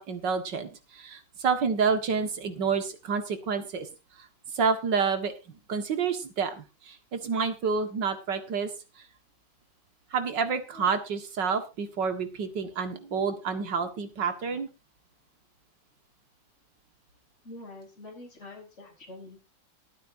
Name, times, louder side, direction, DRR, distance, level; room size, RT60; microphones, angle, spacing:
voice 1, 0.0-3.9 4.2-4.3 4.5-5.3 5.7-8.7 10.1-14.7, right 5 dB, 75° right, 8 dB, 2.4 m, -29 dB
voice 2, 17.4-19.4, left 2 dB, 40° left, -1 dB, 4.2 m, -46 dB
22.5 x 8.9 x 2.7 m, 0.28 s
omnidirectional pair, 2.0 m